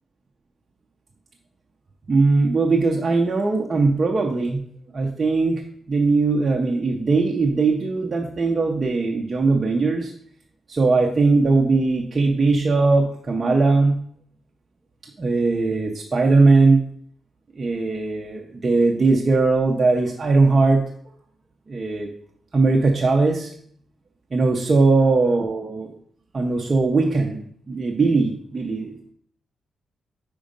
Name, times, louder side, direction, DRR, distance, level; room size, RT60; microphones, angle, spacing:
voice 1, 2.1-4.6 4.9-5.6 5.9-10.1 10.7-14.0 15.2-16.8 17.6-20.8 21.7-22.1 22.5-23.5 24.3-25.9 26.3-27.4 27.7-29.1, right 3 dB, 30° right, 0 dB, 0.6 m, -19 dB
5.1 x 5.0 x 5.2 m, 0.62 s
wide cardioid pair, 165°, 0 cm